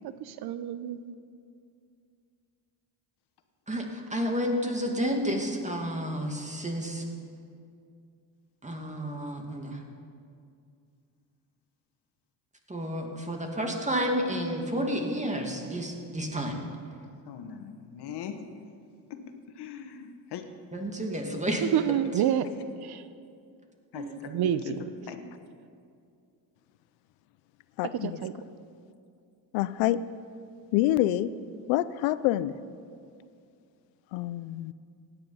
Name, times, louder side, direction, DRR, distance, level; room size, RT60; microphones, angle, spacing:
voice 1, 0.2-1.1 21.6-22.5 22.8-23.0 24.3-24.6 28.0-28.3, right 10 dB, 60° right, 13 dB, 0.8 m, -28 dB
voice 2, 3.7-7.1 8.6-9.8 12.7-16.6 20.7-21.6 23.9-24.2, equal, 15° right, 2 dB, 2.3 m, -31 dB
voice 3, 17.2-18.4 19.1-20.5 23.9-24.1 24.4-24.7 25.1-25.2, left 8 dB, 65° left, 7 dB, 1.4 m, -40 dB
voice 4, 27.8-28.2 29.5-30.0 30.7-31.3 31.7-32.5 34.1-34.7, left 14 dB, 85° left, 16 dB, 0.6 m, -26 dB
16.0 x 9.9 x 5.6 m, 2.4 s
supercardioid pair, 85°, 43 cm